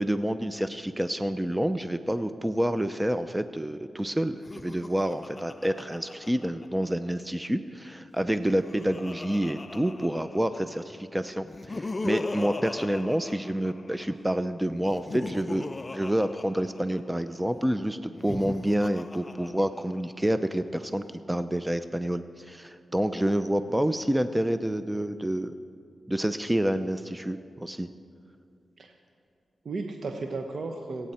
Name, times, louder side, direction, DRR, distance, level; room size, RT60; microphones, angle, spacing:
voice 1, 0.0-15.7 15.9-25.5 26.1-27.9, right 1 dB, 15° right, 11 dB, 0.7 m, -28 dB
Laughter, 4.3-7.1 8.2-10.8 11.4-14.2 14.8-17.2 18.1-20.2, left 2 dB, 40° left, 0.4 m, -39 dB
voice 2, 23.7-24.0 28.8-28.9 29.6-31.1, right 3 dB, 65° right, 3 dB, 1.2 m, -35 dB
27.5 x 9.4 x 4.4 m, 2.4 s
supercardioid pair, 40°, 0 cm